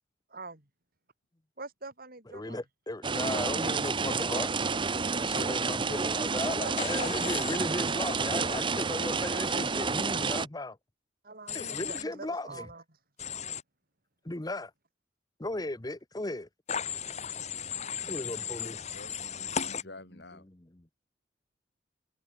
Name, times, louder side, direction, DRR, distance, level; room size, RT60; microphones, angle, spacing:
voice 1, 0.3-0.6 1.6-2.6 6.3-6.8 11.2-12.8, right 3 dB, 50° right, 5.2 m, -44 dB
voice 2, 2.3-4.5 5.1-10.8 11.5-12.7 14.2-14.7 15.4-16.5 18.1-18.8 19.7-19.8 20.5-20.9, left 2 dB, 20° left, 1.0 m, -36 dB
sound 1, 3.0-10.5, right 4 dB, 25° right, 0.8 m, -30 dB
Human voice / Train, 6.8-7.6 11.5-12.0 13.2-13.6 16.7-19.8, left 7 dB, 35° left, 2.0 m, -36 dB
voice 3, 18.2-20.5, left 2 dB, 60° left, 4.0 m, -51 dB
head